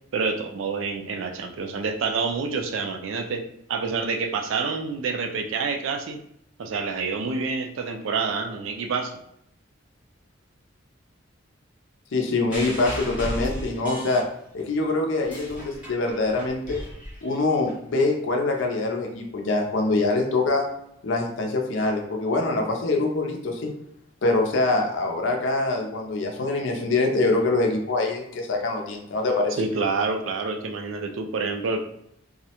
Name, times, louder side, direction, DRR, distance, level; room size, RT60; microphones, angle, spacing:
voice 1, 0.1-3.4 3.7-6.2 6.6-9.2 29.6-31.8, right 4 dB, 75° right, 5 dB, 0.3 m, -27 dB
voice 2, 12.1-14.2 14.5-16.8 17.2-20.6 21.0-23.7 24.2-29.6, left 2 dB, 65° left, 2 dB, 0.5 m, -24 dB
sound 1, 12.5-14.7 15.1-17.7 18.6-18.7, equal, 5° right, 0.6 m, -35 dB
2.3 x 2.1 x 2.8 m, 0.74 s
head